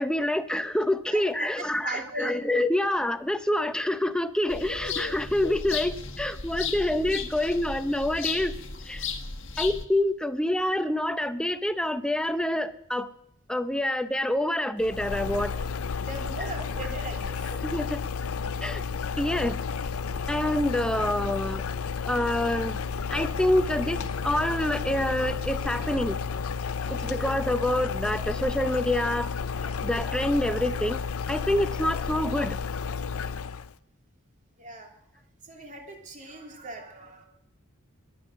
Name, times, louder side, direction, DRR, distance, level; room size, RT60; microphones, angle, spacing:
voice 1, 0.0-8.5 8.9-9.1 9.6-13.1 13.5-15.5 17.6-18.0 18.6-18.8 19.2-19.6 20.3-21.6 22.0-22.8 23.1-26.2 26.9-29.3 29.8-31.0 31.3-32.6, left 1 dB, 5° left, 11 dB, 0.7 m, -27 dB
voice 2, 1.1-2.3 15.5-15.7 16.0-17.4 23.0-23.1 26.8-27.1 29.6-29.8 34.6-34.9 35.4-37.2, right 2 dB, 35° right, 2 dB, 3.0 m, -39 dB
sound 1, 4.5-9.8, left 5 dB, 60° left, 1.3 m, -35 dB
sound 2, 14.8-33.7, left 5 dB, 80° left, 0.5 m, -32 dB
sound 3, 19.6-26.6, right 1 dB, 15° right, 7.9 m, -48 dB
22.0 x 8.7 x 6.4 m, 0.77 s
head